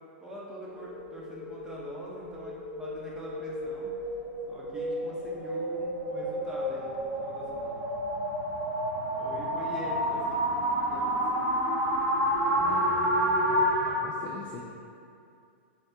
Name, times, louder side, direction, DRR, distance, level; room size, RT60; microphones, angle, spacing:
voice 1, 0.2-3.9 4.5-7.8 9.2-11.2, right 1 dB, 10° right, -6 dB, 0.7 m, -43 dB
sound 1, 0.7-13.9, equal, 70° right, 1.2 m, -30 dB
voice 2, 12.5-14.6, left 4 dB, 20° left, -4 dB, 0.3 m, -43 dB
3.4 x 2.4 x 4.3 m, 2.5 s
hypercardioid pair, 140°, 7 cm